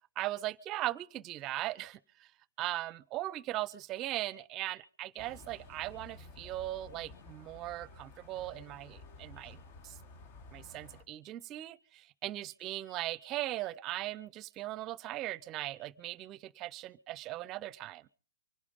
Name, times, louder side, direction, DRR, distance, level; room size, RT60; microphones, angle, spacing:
voice 1, 0.2-2.3 2.6-10.0 10.5-18.1, right 15 dB, 30° right, 0.7 m, -39 dB
sound 1, 5.2-11.0, left 3 dB, 50° left, 3.1 m, -53 dB
24.5 x 11.0 x 5.3 m
hypercardioid pair, 130°, 0 cm